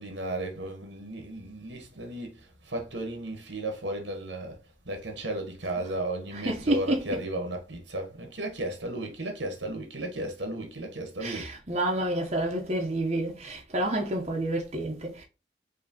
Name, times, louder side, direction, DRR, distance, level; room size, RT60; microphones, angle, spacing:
voice 1, 0.0-4.6 4.8-11.5, right 1 dB, 85° right, 1.4 m, -34 dB
voice 2, 6.3-7.2 11.2-15.2, right 1 dB, 35° right, 1.0 m, -29 dB
5.0 x 3.0 x 2.9 m
head